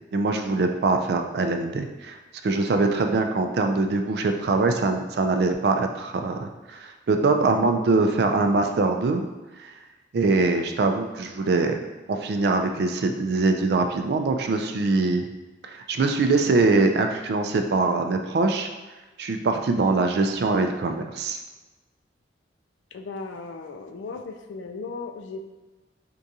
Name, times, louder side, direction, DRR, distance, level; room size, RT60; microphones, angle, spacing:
voice 1, 0.1-2.2 2.4-9.2 9.6-9.7 10.1-11.8 12.1-15.2 15.6-18.7 19.2-21.4, right 3 dB, 60° right, 5 dB, 0.3 m, -23 dB
voice 2, 22.9-25.5, left 4 dB, 80° left, 6 dB, 0.4 m, -36 dB
4.5 x 2.5 x 2.7 m, 1.2 s
head